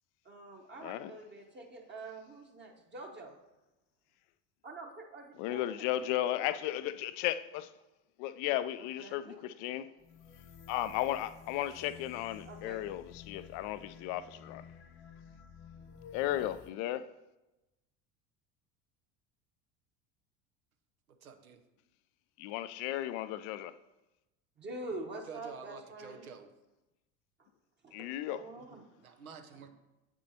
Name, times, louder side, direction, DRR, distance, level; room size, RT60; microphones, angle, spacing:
voice 1, 0.2-3.3 4.6-5.9 6.2-6.3 9.0-9.4 12.5-12.8 24.6-26.3 27.8-28.0 28.3-28.8, right 2 dB, 25° right, 1.0 m, -45 dB
voice 2, 0.8-1.1 5.4-7.7 8.2-9.9 10.7-14.6 16.1-17.1 22.4-23.8 27.9-28.4, left 13 dB, 45° left, 0.4 m, -35 dB
sound 1, 10.0-16.7, left 6 dB, 30° left, 0.9 m, -53 dB
voice 3, 21.2-21.6 25.3-26.5 29.0-29.7, right 6 dB, 85° right, 0.8 m, -49 dB
8.3 x 6.2 x 2.8 m
hypercardioid pair, 70°, 41 cm